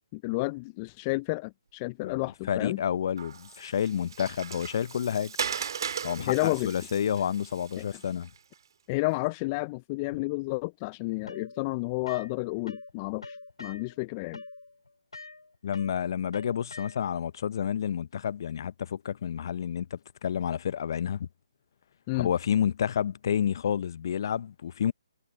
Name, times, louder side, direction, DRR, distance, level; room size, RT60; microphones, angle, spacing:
voice 1, 0.0-2.8 6.3-6.7 7.8-7.9 8.9-14.4 22.1-22.3, left 25 dB, 25° left, 0.6 m, -31 dB
voice 2, 2.5-5.4 6.0-8.3 15.6-21.3 22.1-24.9, left 8 dB, 50° left, 0.9 m, -29 dB
Water, 3.2-8.5, right 7 dB, 55° right, 2.3 m, -38 dB
sound 1, 11.3-12.9 13.2-17.3, left 3 dB, 80° left, 6.0 m, -45 dB
figure-of-eight pair, 140°, 3 cm